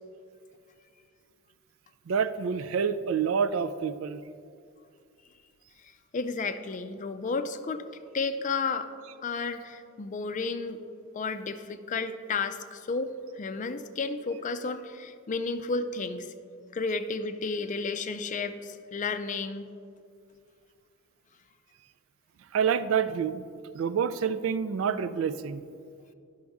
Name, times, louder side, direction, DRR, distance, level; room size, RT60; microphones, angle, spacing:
voice 1, 2.1-4.2 22.5-23.4 23.7-25.6, right 7 dB, 70° right, 12 dB, 0.4 m, -27 dB
voice 2, 6.1-7.8 8.1-8.9 9.2-10.8 11.1-16.3 16.7-19.7, left 4 dB, 35° left, 10 dB, 0.4 m, -32 dB
11.0 x 6.2 x 3.5 m, 2.3 s
head